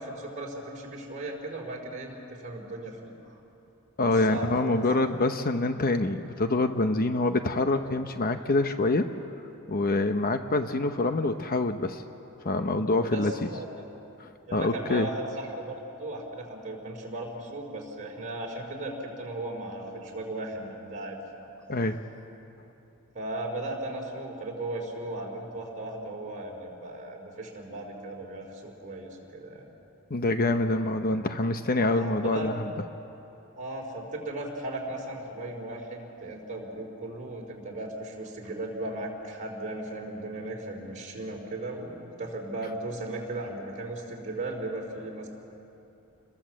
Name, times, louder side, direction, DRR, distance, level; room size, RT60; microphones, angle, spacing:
voice 1, 0.0-3.3 4.0-4.8 13.1-13.7 14.5-21.2 23.1-29.6 31.9-32.5 33.6-45.3, right 2 dB, 35° right, -1 dB, 4.2 m, -36 dB
voice 2, 4.0-9.1 9.7-12.0 12.4-13.5 14.2-15.1 21.7-22.0 30.1-32.7, left 2 dB, 40° left, 8 dB, 0.9 m, -26 dB
29.0 x 21.5 x 7.6 m, 2.9 s
head